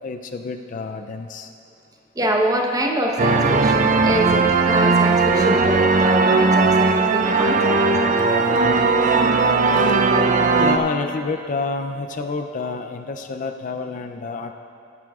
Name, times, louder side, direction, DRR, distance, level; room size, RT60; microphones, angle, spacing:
voice 1, 0.0-1.5 10.6-14.5, left 4 dB, 40° left, 6 dB, 0.4 m, -28 dB
voice 2, 2.2-7.8, right 1 dB, 20° right, 0 dB, 0.9 m, -25 dB
sound 1, 3.2-10.8, right 3 dB, 40° right, 0.5 m, -18 dB
sound 2, 4.7-9.7, right 3 dB, 65° right, 1.1 m, -35 dB
16.5 x 11.0 x 2.4 m, 2.5 s
head